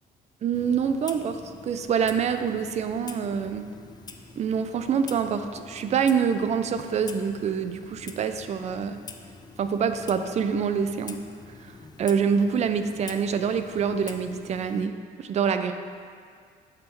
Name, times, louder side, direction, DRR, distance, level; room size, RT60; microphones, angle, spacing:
voice 1, 0.4-3.7 4.4-9.0 9.6-11.2 12.0-15.7, right 6 dB, 40° right, 9 dB, 0.4 m, -26 dB
Clock, 0.5-14.9, left 3 dB, 25° left, 0.5 m, -46 dB
7.8 x 3.7 x 4.4 m, 2.1 s
cardioid pair, 110°, 17 cm